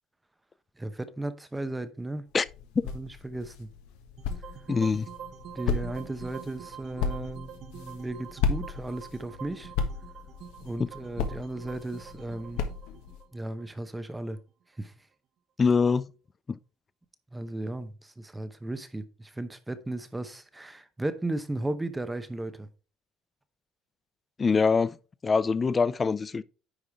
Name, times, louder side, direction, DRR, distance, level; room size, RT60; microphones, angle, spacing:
voice 1, 0.8-2.3 2.9-3.7 5.5-9.7 10.6-12.6 13.3-14.4 14.8-14.9 17.3-22.7, right 2 dB, 10° right, 0.8 m, -35 dB
sound 1, 2.3-13.2, left 5 dB, 90° left, 1.3 m, -35 dB
sound 2, 4.2-14.4, right 8 dB, 45° right, 0.8 m, -46 dB
voice 2, 4.7-5.1 10.8-10.9 15.6-16.1 16.5-16.6 24.4-25.0 25.2-26.4, left 5 dB, 20° left, 0.4 m, -24 dB
9.9 x 4.8 x 3.5 m
cardioid pair, 145°, 0 cm